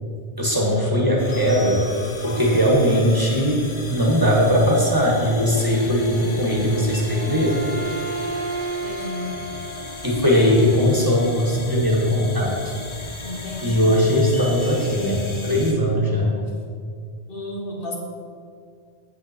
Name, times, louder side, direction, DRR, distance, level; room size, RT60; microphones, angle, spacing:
voice 1, 0.4-1.8 2.2-3.6 3.9-7.6 10.0-12.6 13.6-16.3, equal, 20° right, -3 dB, 1.6 m, -19 dB
sound 1, 1.2-15.7, left 2 dB, 30° left, 0.8 m, -36 dB
Bowed string instrument, 7.0-10.5, right 3 dB, 60° right, 0.8 m, -32 dB
voice 2, 8.8-9.3 13.2-13.9 17.3-18.0, left 2 dB, 65° left, -1 dB, 1.6 m, -32 dB
8.4 x 7.9 x 4.4 m, 2.2 s
omnidirectional pair, 1.0 m